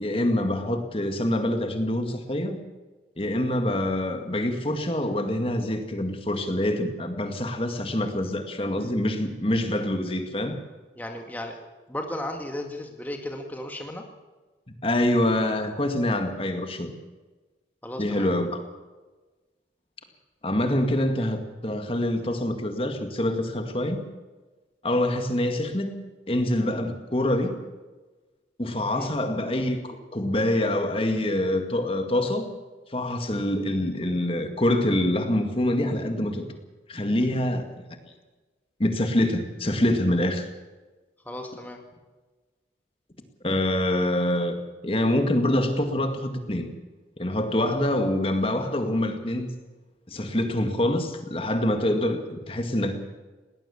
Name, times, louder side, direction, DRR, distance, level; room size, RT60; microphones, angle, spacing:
voice 1, 0.0-2.6 3.2-10.6 14.8-16.9 18.0-18.6 20.4-24.0 24.8-26.0 26.3-27.6 28.6-32.5 32.9-36.5 36.9-37.7 38.8-40.5 43.4-44.6 44.8-46.7 47.2-49.5 50.1-53.0, left 1 dB, 30° left, 6 dB, 2.0 m, -25 dB
voice 2, 11.0-11.6 11.9-14.0 17.8-18.3 28.9-29.1 41.3-41.8, left 1 dB, 10° left, 3 dB, 1.9 m, -35 dB
20.0 x 19.0 x 7.1 m, 1.2 s
head